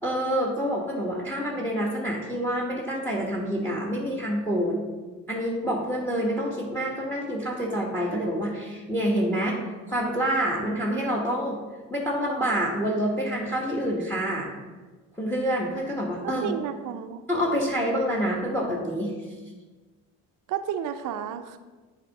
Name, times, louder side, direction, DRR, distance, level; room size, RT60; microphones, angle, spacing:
voice 1, 0.0-4.8 5.3-9.6 9.9-11.6 11.9-14.5 15.2-16.6 17.3-19.1, equal, 5° left, -2 dB, 1.2 m, -27 dB
voice 2, 16.2-17.2 20.5-21.6, right 9 dB, 70° right, 8 dB, 0.6 m, -32 dB
7.4 x 3.7 x 5.3 m, 1.3 s
cardioid pair, 90°, 33 cm